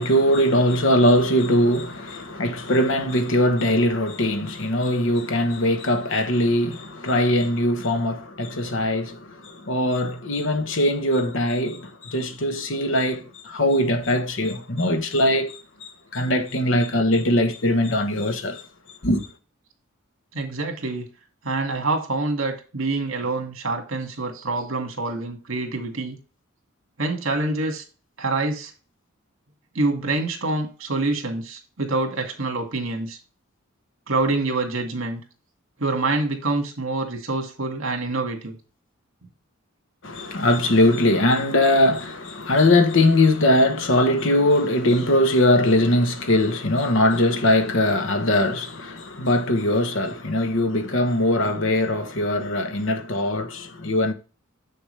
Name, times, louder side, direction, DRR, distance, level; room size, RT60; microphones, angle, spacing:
voice 1, 0.0-18.6 19.0-19.3 40.0-54.1, left 1 dB, 65° left, 1.1 m, -21 dB
voice 2, 20.3-21.1 21.4-26.2 27.0-27.8 28.2-28.7 29.7-33.2 34.1-35.2 35.8-38.5, right 2 dB, 70° right, 2.1 m, -26 dB
7.3 x 6.6 x 3.3 m
head